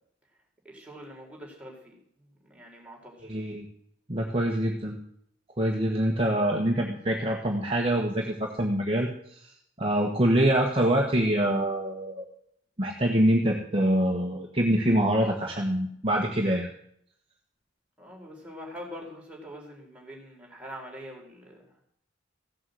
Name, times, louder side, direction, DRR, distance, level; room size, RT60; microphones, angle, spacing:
voice 1, 0.6-2.0 2.3-3.3 18.0-21.8, equal, 5° right, -2 dB, 4.0 m, -44 dB
voice 2, 3.2-3.7 4.1-5.0 5.6-9.5 9.8-12.3 12.8-16.7, right 1 dB, 30° right, 0 dB, 1.5 m, -25 dB
15.5 x 7.4 x 7.8 m, 0.69 s
head